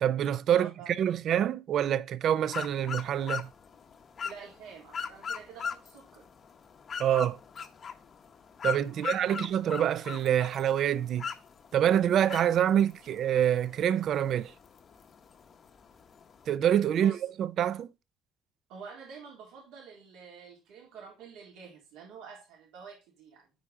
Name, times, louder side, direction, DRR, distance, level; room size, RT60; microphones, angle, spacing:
voice 1, 0.0-3.5 7.0-7.4 8.6-11.3 11.7-14.5 16.5-17.1 17.4-17.9, right 10 dB, 45° right, 0.5 m, -26 dB
voice 2, 0.5-1.1 4.2-6.3 8.9-9.4 16.9-17.2 18.7-23.5, right 6 dB, 80° right, 3.8 m, -48 dB
sound 1, 2.5-16.6, left 6 dB, 30° left, 0.8 m, -41 dB
8.7 x 5.0 x 3.7 m
cardioid pair, 170°, 0 cm